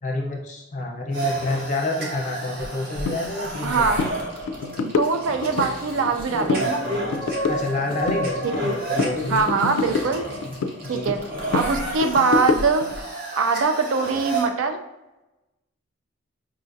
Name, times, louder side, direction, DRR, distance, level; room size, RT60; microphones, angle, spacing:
voice 1, 0.0-4.0 7.5-9.5 10.4-11.1, left 2 dB, 35° left, 0 dB, 0.6 m, -28 dB
sound 1, 1.1-14.5, right 1 dB, 45° right, 0.7 m, -31 dB
sound 2, 3.1-3.2 3.5-3.7 4.0-4.1 4.5-5.7 6.1-6.7 7.0-8.7 9.0-10.8 11.1-12.9, left 4 dB, 85° left, 0.3 m, -26 dB
voice 2, 3.6-4.0 4.8-6.8 9.3-10.2 10.9-11.2 11.5-12.9 13.4-14.8, right 4 dB, 75° right, 6 dB, 0.4 m, -22 dB
4.8 x 2.5 x 2.5 m, 1.0 s
head